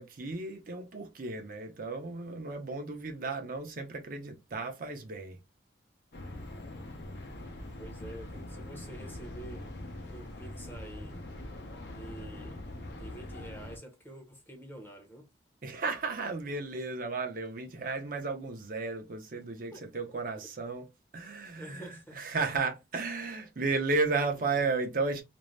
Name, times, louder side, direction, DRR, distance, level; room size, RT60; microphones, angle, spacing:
voice 1, 0.0-5.4 15.6-20.9 21.1-25.2, right 3 dB, 45° right, 0.5 m, -34 dB
sound 1, 6.1-13.8, left 1 dB, 60° left, 0.6 m, -43 dB
voice 2, 7.8-9.7 10.1-11.2 11.8-12.6 12.9-15.3 19.7-19.9 21.5-22.2, right 1 dB, 10° left, 0.7 m, -48 dB
2.5 x 2.0 x 3.1 m
head